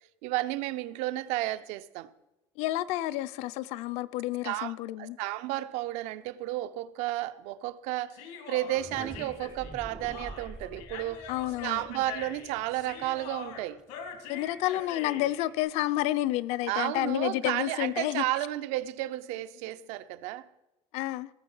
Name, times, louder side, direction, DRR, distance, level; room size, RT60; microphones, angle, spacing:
voice 1, 0.2-2.1 4.4-4.7 5.0-8.2 8.5-11.3 11.6-13.8 16.7-20.5, right 16 dB, 85° right, 0.6 m, -32 dB
voice 2, 2.6-5.2 11.3-11.8 14.3-18.2 20.9-21.3, left 15 dB, 70° left, 0.5 m, -30 dB
Human voice, 8.1-15.5, left 6 dB, 85° left, 1.9 m, -43 dB
sound 1, 8.6-14.5, right 2 dB, 5° right, 0.4 m, -47 dB
17.0 x 7.1 x 5.5 m
cardioid pair, 180°, 11 cm